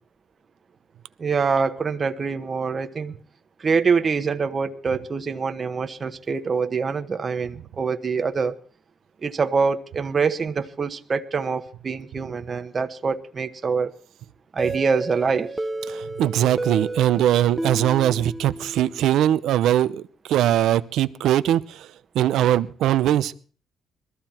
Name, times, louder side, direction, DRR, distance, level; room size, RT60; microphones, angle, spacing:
voice 1, 1.2-3.1 3.6-8.6 9.2-13.9 14.5-15.5, right 5 dB, 40° right, 1.2 m, -25 dB
sound 1, 14.6-19.3, right 2 dB, 15° right, 0.8 m, -32 dB
voice 2, 15.9-20.0 20.3-21.9 22.1-23.3, right 12 dB, 80° right, 0.7 m, -21 dB
21.5 x 14.0 x 4.4 m
cardioid pair, 90°, 0 cm